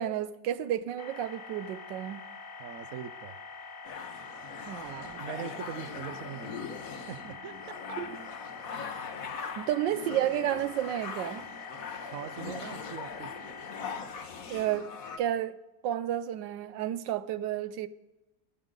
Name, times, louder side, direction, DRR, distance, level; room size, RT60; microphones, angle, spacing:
voice 1, 0.0-2.2 4.7-5.2 8.0-8.1 9.6-11.4 14.5-14.9 15.2-15.6 15.8-17.9, right 11 dB, 80° right, 1.3 m, -31 dB
sound 1, 1.0-14.0, left 5 dB, 35° left, 1.0 m, -45 dB
voice 2, 2.6-3.4 5.1-6.6 7.0-8.0 12.1-13.3, right 9 dB, 60° right, 0.9 m, -42 dB
sound 2, 3.8-15.2, left 5 dB, 55° left, 1.3 m, -41 dB
23.5 x 8.0 x 3.8 m
omnidirectional pair, 2.0 m